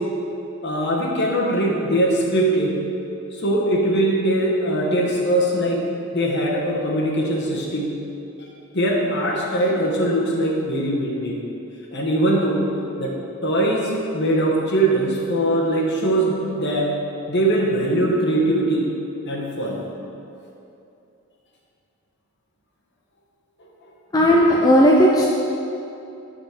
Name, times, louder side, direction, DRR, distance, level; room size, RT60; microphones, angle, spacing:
voice 1, 0.6-2.7 3.4-5.8 6.1-7.9 8.7-11.4 11.9-12.6 13.0-13.1 13.4-16.9 17.3-18.9 19.3-19.8, right 1 dB, 50° left, -2 dB, 1.1 m, -21 dB
voice 2, 24.1-25.3, equal, 15° left, -3 dB, 0.4 m, -15 dB
9.5 x 4.1 x 4.8 m, 2.8 s
head